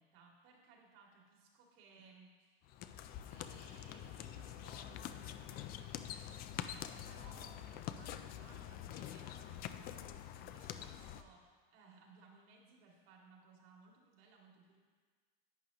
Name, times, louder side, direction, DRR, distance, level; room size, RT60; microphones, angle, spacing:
voice 1, 0.0-2.6 3.3-14.8, right 4 dB, 60° right, -1 dB, 2.3 m, -62 dB
sound 1, 2.6-11.2, left 11 dB, 30° left, 0.4 m, -46 dB
11.0 x 7.9 x 2.9 m, 1.5 s
supercardioid pair, 120°, 33 cm